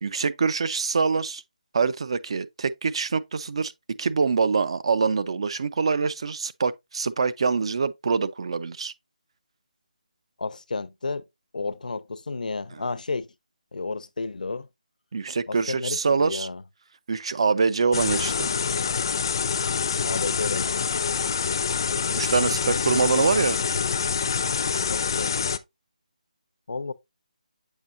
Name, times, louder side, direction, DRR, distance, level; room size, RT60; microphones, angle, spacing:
voice 1, 0.0-1.4 1.7-3.7 4.0-8.9 12.7-12.8 15.1-16.5 17.1-18.5 22.1-23.6, right 5 dB, 40° right, 0.4 m, -24 dB
voice 2, 10.4-11.2 11.5-13.3 13.7-14.7 15.5-16.6 20.0-20.8 22.4-22.8 23.1-23.4 24.9-25.4 26.7-26.9, left 3 dB, 75° left, 0.6 m, -32 dB
sound 1, 17.9-25.6, left 6 dB, 30° left, 0.3 m, -26 dB
7.2 x 5.2 x 2.5 m
figure-of-eight pair, 170°, 4 cm